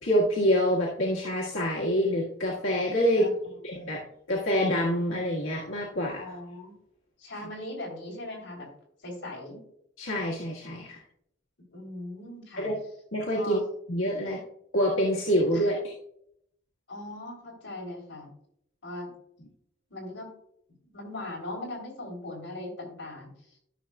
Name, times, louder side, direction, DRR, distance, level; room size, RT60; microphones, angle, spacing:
voice 1, 0.0-3.3 3.6-4.0 4.3-6.4 10.0-11.0 12.6-12.7 13.1-13.6 13.9-14.4 14.7-15.8, equal, 90° left, -4 dB, 1.6 m, -26 dB
voice 2, 6.2-6.7 7.2-8.7 9.0-9.6 11.7-12.7 13.4-13.6 15.5-15.7 16.9-18.3 18.8-19.1 19.9-20.3 20.9-23.3, left 1 dB, 65° left, -1 dB, 3.6 m, -39 dB
13.5 x 6.4 x 2.3 m, 0.71 s
head